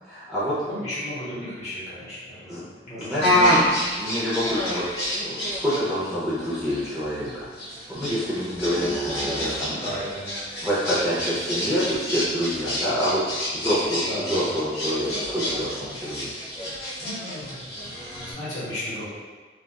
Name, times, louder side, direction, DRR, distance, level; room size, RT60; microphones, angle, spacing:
voice 1, 0.1-0.6 2.5-2.6 3.0-3.6 4.0-4.8 5.2-7.5 7.9-10.0 10.6-13.2 13.5-16.3, equal, ahead, -11 dB, 0.5 m, -27 dB
voice 2, 0.6-3.6 9.8-10.3 14.1-14.5 17.0-17.9 18.1-19.1, left 1 dB, 40° left, -9 dB, 1.0 m, -35 dB
sound 1, 3.2-18.3, equal, 70° left, 0.9 m, -28 dB
3.1 x 2.3 x 2.2 m, 1.4 s
head